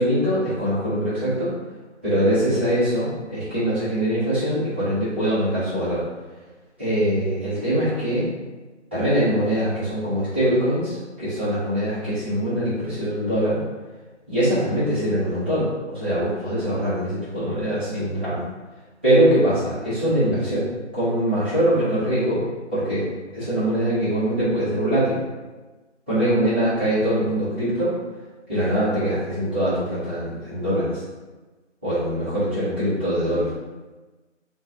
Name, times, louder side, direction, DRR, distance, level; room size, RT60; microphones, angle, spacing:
voice 1, 0.0-1.5 2.0-6.1 6.8-8.3 8.9-13.6 14.3-18.4 19.0-20.7 20.9-22.4 22.7-23.1 23.3-25.2 26.1-27.9 28.5-31.0 31.8-33.5, right 1 dB, 10° right, -16 dB, 0.6 m, -22 dB
2.7 x 2.2 x 3.6 m, 1.2 s
figure-of-eight pair, 150°, 36 cm